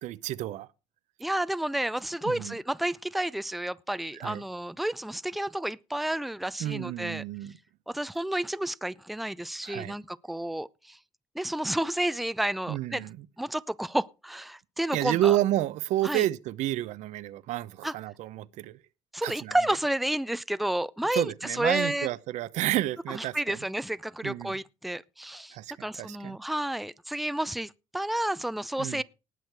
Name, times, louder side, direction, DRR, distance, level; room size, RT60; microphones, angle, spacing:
voice 1, 0.0-0.7 2.2-2.6 4.1-4.4 6.6-7.5 9.6-9.9 12.7-13.3 14.9-18.8 19.2-19.6 21.1-23.6 24.2-24.6 25.5-26.4 28.8-29.0, right 14 dB, 75° right, 0.7 m, -30 dB
voice 2, 1.2-7.2 7.9-11.0 11.3-13.1 13.4-15.4 16.0-16.2 17.8-17.9 19.1-22.1 23.1-25.6 25.8-29.0, right 1 dB, ahead, 0.5 m, -31 dB
18.5 x 6.4 x 4.7 m
supercardioid pair, 85°, 12 cm